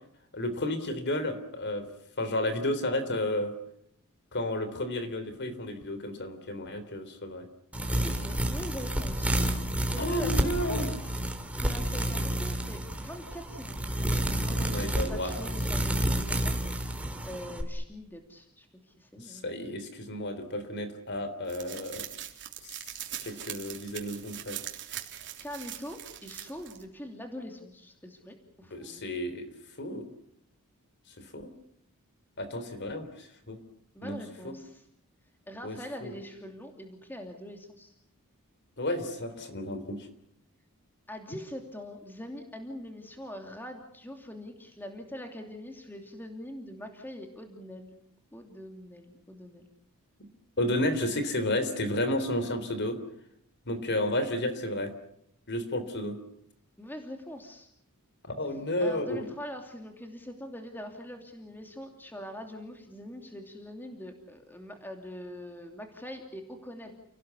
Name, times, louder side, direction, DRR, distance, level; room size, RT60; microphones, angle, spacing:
voice 1, 0.3-1.9 2.2-3.5 4.3-7.5 10.0-10.9 14.6-15.4 19.2-22.0 22.6-22.8 23.2-24.6 28.7-29.5 29.8-30.1 31.2-31.5 32.4-33.6 34.0-34.2 34.4-34.5 35.6-36.1 38.8-40.1 50.6-53.0 53.7-54.9 55.5-56.2 58.2-59.2, left 1 dB, 50° left, 11 dB, 3.5 m, -32 dB
sound 1, 7.7-17.6, right 1 dB, 5° right, 3.2 m, -30 dB
voice 2, 8.0-10.9 11.6-19.5 25.2-29.0 33.9-34.9 35.5-37.9 41.1-48.0 48.3-49.7 56.8-57.7 58.8-66.9, left 1 dB, 10° left, 3 dB, 2.8 m, -43 dB
sound 2, 21.5-26.8, right 11 dB, 55° right, 3.5 m, -41 dB
30.0 x 18.5 x 8.4 m, 0.74 s
head